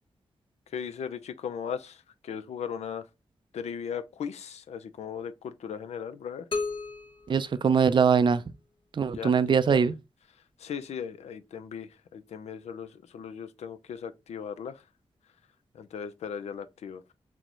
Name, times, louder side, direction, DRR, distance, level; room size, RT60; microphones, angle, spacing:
voice 1, 0.7-3.0 3.5-6.5 9.1-9.8 10.6-14.8 15.7-17.0, left 7 dB, 80° left, 0.4 m, -37 dB
sound 1, 6.5-8.4, left 3 dB, 50° left, 0.9 m, -35 dB
voice 2, 7.3-8.4 9.0-9.9, right 6 dB, 45° right, 0.4 m, -22 dB
4.4 x 2.1 x 3.7 m
supercardioid pair, 40°, 11 cm